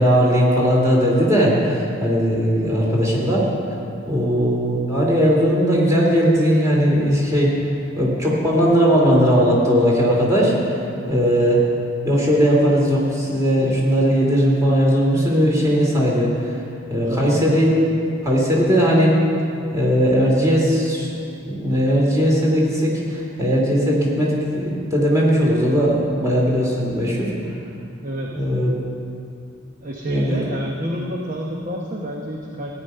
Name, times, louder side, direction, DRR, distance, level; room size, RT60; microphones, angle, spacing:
voice 1, 0.0-3.5 4.0-7.5 7.9-10.6 11.1-11.6 12.0-16.5 16.9-17.7 18.2-19.1 19.7-21.1 21.4-27.3 28.3-28.7 30.0-30.4, equal, 15° right, -4 dB, 2.5 m, -18 dB
voice 2, 2.5-2.9 4.2-4.5 10.9-11.3 16.9-17.5 28.0-28.3 29.8-32.7, right 1 dB, 40° right, -1 dB, 0.9 m, -30 dB
15.5 x 9.4 x 5.5 m, 2.6 s
head